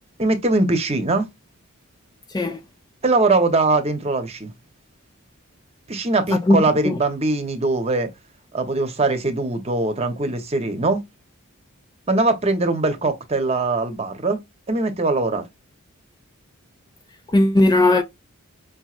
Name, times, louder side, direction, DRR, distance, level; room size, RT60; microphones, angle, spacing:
voice 1, 0.2-1.3 3.0-4.5 5.9-8.1 8.5-11.0 12.1-14.4 14.7-15.4, right 2 dB, 30° right, 0.9 m, -21 dB
voice 2, 6.3-7.0 17.3-18.0, left 1 dB, 20° left, 0.3 m, -18 dB
5.2 x 3.1 x 2.4 m
head